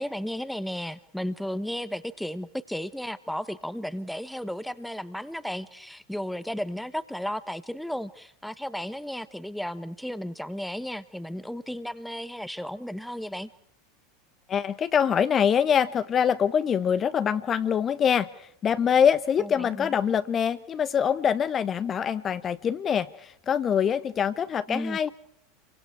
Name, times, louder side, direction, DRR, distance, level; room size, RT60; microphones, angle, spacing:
voice 1, 0.0-13.5 19.4-20.0 24.7-25.1, equal, ahead, 14 dB, 1.3 m, -34 dB
voice 2, 14.5-25.1, left 8 dB, 30° left, 13 dB, 1.1 m, -24 dB
29.5 x 24.0 x 4.8 m, 0.69 s
figure-of-eight pair, 80°, 0 cm